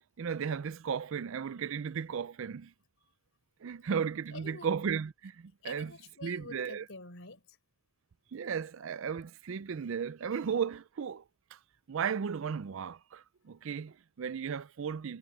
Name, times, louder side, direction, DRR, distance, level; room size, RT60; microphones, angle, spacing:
voice 1, 0.2-2.7 3.6-5.9 6.2-6.8 8.3-11.2 11.5-11.6 11.9-15.2, right 6 dB, 60° right, 0.4 m, -35 dB
voice 2, 4.3-4.7 5.6-7.6, left 3 dB, 60° left, 4.5 m, -48 dB
head